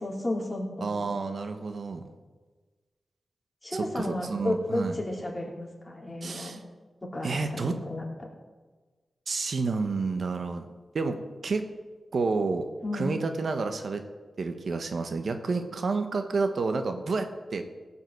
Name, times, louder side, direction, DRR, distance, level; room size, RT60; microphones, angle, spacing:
voice 1, 0.0-1.2 3.6-6.6 7.1-8.1 12.8-13.1, left 1 dB, 20° left, -2 dB, 3.4 m, -33 dB
voice 2, 0.8-2.0 3.7-5.0 6.2-6.6 7.2-7.8 9.3-10.6 10.9-11.2 11.4-11.6 12.1-12.7 12.9-14.0 14.4-17.6, right 4 dB, 65° right, 6 dB, 1.0 m, -29 dB
16.5 x 5.6 x 7.9 m, 1.3 s
wide cardioid pair, 75°, 0 cm